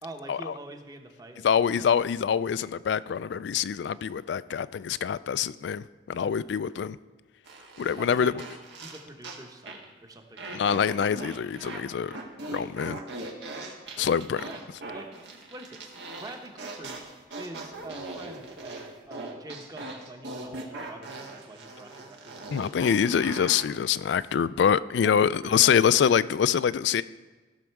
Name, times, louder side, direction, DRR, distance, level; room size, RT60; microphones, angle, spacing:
voice 1, 0.0-1.6 6.2-6.4 8.0-8.3 8.8-10.8 14.0-14.1 14.4-15.1 15.5-15.8 16.1-17.0 17.4-22.4 25.0-26.3, right 1 dB, 20° right, 5 dB, 0.9 m, -45 dB
voice 2, 1.4-7.0 7.8-8.3 10.5-12.2 12.5-13.0 14.0-14.4 22.5-27.0, left 7 dB, 75° left, 17 dB, 0.3 m, -25 dB
sound 1, 7.5-9.4 9.7-9.9 10.4-11.8 12.1-23.7, right 2 dB, 80° right, 1.5 m, -40 dB
16.0 x 6.3 x 4.6 m, 1.3 s
head